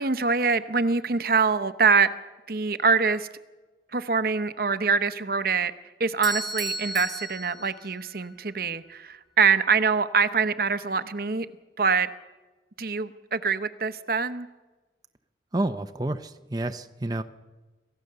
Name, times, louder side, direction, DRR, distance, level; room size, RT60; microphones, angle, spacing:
voice 1, 0.0-2.1 2.5-3.3 3.9-5.7 6.0-11.5 11.8-12.1 12.8-14.5, right 5 dB, 55° right, 12 dB, 0.9 m, -24 dB
Bell / Doorbell, 6.2-8.3, right 1 dB, ahead, 1.9 m, -34 dB
voice 2, 15.5-17.2, right 1 dB, 20° right, 8 dB, 0.6 m, -29 dB
27.0 x 15.5 x 6.7 m, 1.2 s
head